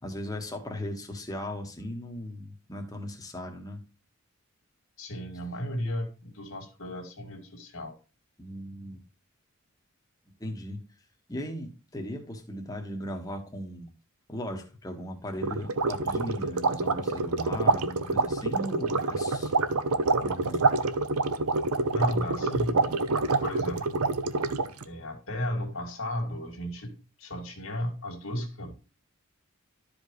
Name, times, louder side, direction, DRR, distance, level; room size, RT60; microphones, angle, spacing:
voice 1, 0.0-3.8 8.4-9.0 10.4-10.8 11.3-13.9 14.3-19.5 20.2-20.7, equal, 15° left, 1.6 m, -37 dB
voice 2, 5.0-8.0 21.9-23.0 23.4-24.0 24.8-28.7, equal, 70° left, 2.3 m, -34 dB
sound 1, 15.4-24.8, right 3 dB, 90° right, 0.8 m, -27 dB
12.5 x 5.1 x 3.2 m
head